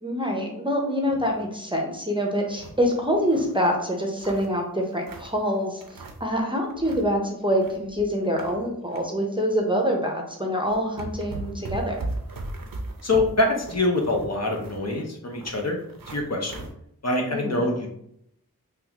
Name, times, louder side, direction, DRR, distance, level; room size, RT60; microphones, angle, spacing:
voice 1, 0.0-12.0 17.3-17.6, equal, 15° right, 0 dB, 0.6 m, -25 dB
sound 1, 1.0-1.5 1.9-2.0 2.3-3.6 4.0-5.4 5.8-6.4 6.7-7.1 7.4-9.0 9.4-9.6 10.3-10.4 10.7-16.7, right 2 dB, 65° right, 0.6 m, -38 dB
voice 2, 13.0-15.8 16.1-16.7 17.0-17.9, left 2 dB, 45° left, 1 dB, 0.6 m, -25 dB
3.5 x 2.3 x 2.9 m, 0.73 s
wide cardioid pair, 50°, 36 cm